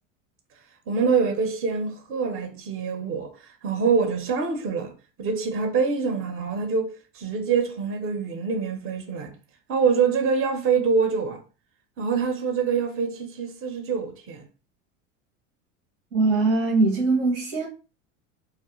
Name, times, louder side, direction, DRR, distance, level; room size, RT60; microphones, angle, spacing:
voice 1, 0.9-4.9 5.2-9.3 9.7-11.4 12.0-14.4, right 5 dB, 35° right, 0.7 m, -25 dB
voice 2, 16.1-17.7, right 3 dB, 85° right, 1.0 m, -21 dB
2.4 x 2.1 x 2.9 m
hypercardioid pair, 95°, 38 cm